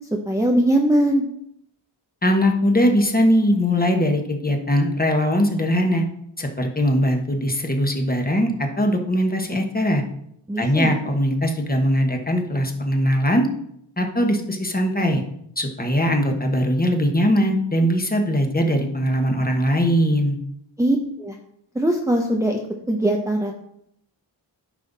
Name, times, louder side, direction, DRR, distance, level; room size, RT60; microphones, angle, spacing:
voice 1, 0.3-1.3 10.5-11.0 20.8-21.4 21.7-22.6 22.9-23.5, right 1 dB, 5° right, 1 dB, 0.7 m, -20 dB
voice 2, 2.2-6.0 6.4-10.0 10.6-13.5 14.0-15.2 15.6-20.4, equal, 20° left, 3 dB, 1.3 m, -20 dB
9.3 x 5.7 x 4.0 m, 0.73 s
wide cardioid pair, 100°, 48 cm